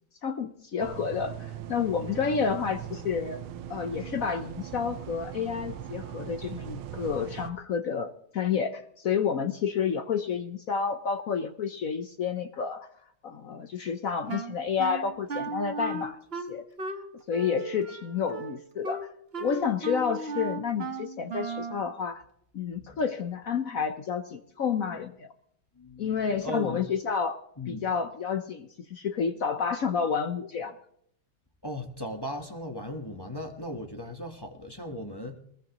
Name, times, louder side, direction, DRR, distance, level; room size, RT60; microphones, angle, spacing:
voice 1, 0.2-3.4 3.7-12.9 13.2-16.2 16.5-16.6 17.3-19.1 19.4-22.2 22.5-25.3 26.0-27.4 27.7-30.7, left 6 dB, 60° left, 0.9 m, -30 dB
sound 1, 0.8-7.5, right 10 dB, 90° right, 1.7 m, -40 dB
Wind instrument woodwind instrument, 14.3-21.8, right 3 dB, 40° right, 1.0 m, -36 dB
voice 2, 25.7-26.8 27.6-27.9 31.6-35.4, equal, 15° left, 1.0 m, -37 dB
21.0 x 20.0 x 3.0 m
omnidirectional pair, 2.3 m